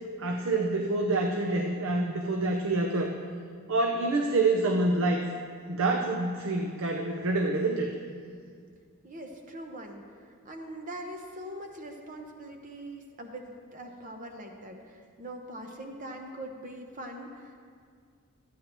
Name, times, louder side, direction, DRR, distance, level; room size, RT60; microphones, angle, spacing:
voice 1, 0.2-3.1 3.7-5.3 5.7-7.9, right 2 dB, 65° right, 2 dB, 0.6 m, -27 dB
voice 2, 9.0-17.7, right 1 dB, 35° right, 3 dB, 0.8 m, -42 dB
14.0 x 9.1 x 3.0 m, 2.1 s
head